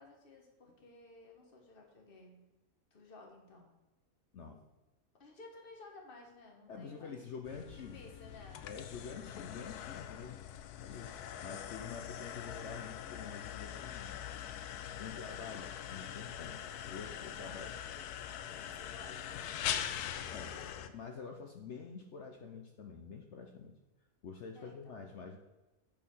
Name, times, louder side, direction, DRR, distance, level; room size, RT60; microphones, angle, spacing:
voice 1, 0.0-2.5 2.9-3.7 5.2-7.2 7.7-8.6 17.2-18.0 18.4-20.0 20.3-20.9 24.5-25.1, left 3 dB, 40° left, 1 dB, 1.5 m, -56 dB
voice 2, 6.7-8.0 8.6-10.4 10.8-14.2 15.0-17.7 20.3-20.6 20.9-23.7 24.2-25.4, left 5 dB, 60° left, 3 dB, 0.9 m, -47 dB
sound 1, 7.4-20.9, left 10 dB, 85° left, 1.1 m, -43 dB
8.3 x 4.3 x 5.4 m, 1.1 s
omnidirectional pair, 1.6 m